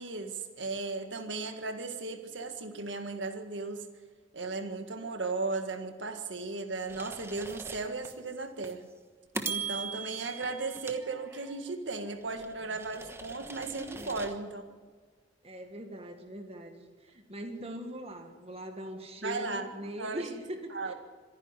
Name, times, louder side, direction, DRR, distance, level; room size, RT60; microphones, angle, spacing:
voice 1, 0.0-3.9 4.3-8.9 9.5-14.6 19.2-19.7 20.0-20.2 20.7-20.9, right 3 dB, 85° right, 6 dB, 1.8 m, -36 dB
sound 1, 6.9-8.1 8.6-8.8 9.3-11.7 12.2-14.4, right 4 dB, 15° right, 1.2 m, -40 dB
voice 2, 13.9-14.4 15.4-20.9, equal, 35° right, 5 dB, 1.8 m, -41 dB
26.0 x 10.5 x 9.8 m, 1.5 s
head